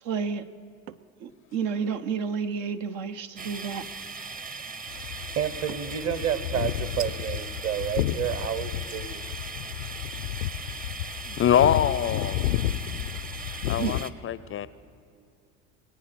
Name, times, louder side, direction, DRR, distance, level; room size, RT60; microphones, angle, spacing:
voice 1, 0.0-0.4 1.2-4.0 11.2-11.4 13.8-13.9, right 6 dB, 70° right, 8 dB, 0.9 m, -31 dB
sound 1, 0.9-1.2 1.6-2.1 3.8-4.4 5.7-6.0 7.0-7.5, right 11 dB, 90° right, 0.5 m, -44 dB
sound 2, 3.4-14.1, right 4 dB, 20° right, 0.8 m, -39 dB
sound 3, 4.9-14.0, left 13 dB, 85° left, 0.6 m, -32 dB
voice 2, 4.9-9.3, right 9 dB, 40° right, 14 dB, 1.2 m, -30 dB
voice 3, 11.4-12.5 13.7-14.7, left 9 dB, 35° left, 17 dB, 0.5 m, -24 dB
23.0 x 8.8 x 6.7 m, 2.6 s
hypercardioid pair, 70°, 39 cm